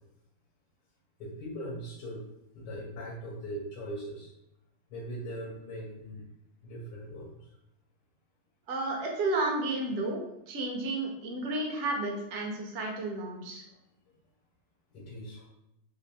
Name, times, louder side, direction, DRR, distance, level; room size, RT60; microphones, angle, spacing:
voice 1, 1.2-2.2 2.5-4.3 4.9-6.2 6.6-7.5 14.9-15.5, equal, 80° left, -4 dB, 1.4 m, -40 dB
voice 2, 8.7-13.6, right 2 dB, 55° right, 0 dB, 0.8 m, -32 dB
3.4 x 2.5 x 2.7 m, 0.84 s
omnidirectional pair, 1.9 m